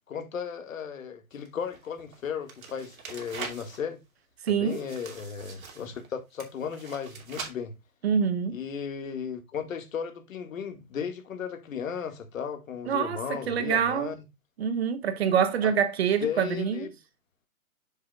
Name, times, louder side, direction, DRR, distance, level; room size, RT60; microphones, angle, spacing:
voice 1, 0.1-4.0 4.5-7.7 8.5-14.2 15.6-15.7 16.2-16.9, left 7 dB, 60° left, 1.9 m, -35 dB
sound 1, 1.3-3.8 4.7-6.1 6.4-7.5, right 5 dB, 65° right, 2.8 m, -43 dB
voice 2, 4.5-4.8 8.0-8.6 12.9-13.2 13.5-14.1 14.6-16.9, right 7 dB, 45° right, 1.0 m, -25 dB
7.6 x 6.5 x 2.4 m
hypercardioid pair, 145°, 45 cm